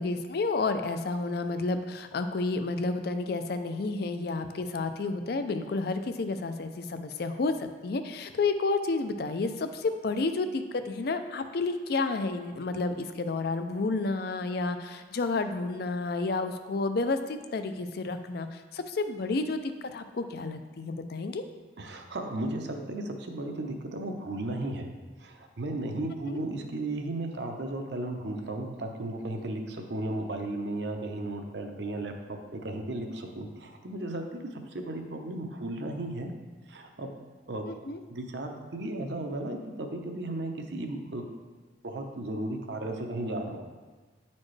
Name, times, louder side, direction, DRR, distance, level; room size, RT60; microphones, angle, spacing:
voice 1, 0.0-21.4 26.3-26.4 37.7-38.0, left 3 dB, 55° left, 9 dB, 0.4 m, -30 dB
voice 2, 21.8-24.9 25.2-36.3 36.7-37.1 37.5-37.6 38.1-41.3 41.8-43.6, right 2 dB, 65° right, 4 dB, 0.7 m, -35 dB
9.6 x 4.3 x 3.2 m, 1.4 s
head